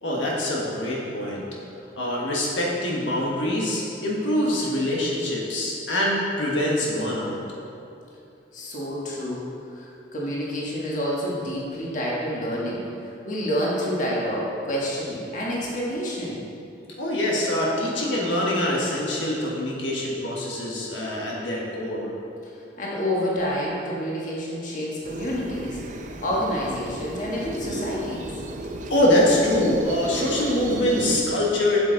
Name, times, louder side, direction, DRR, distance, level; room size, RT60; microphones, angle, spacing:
voice 1, 0.0-1.4 2.0-7.4 17.0-22.1 28.9-31.8, left 1 dB, 85° left, -4 dB, 1.5 m, -24 dB
voice 2, 8.5-16.4 22.4-22.5 22.8-25.8 26.2-28.3, equal, 45° left, -5 dB, 1.5 m, -28 dB
sound 1, 25.0-31.2, right 1 dB, 40° right, 0.6 m, -33 dB
8.2 x 7.7 x 3.9 m, 2.7 s
head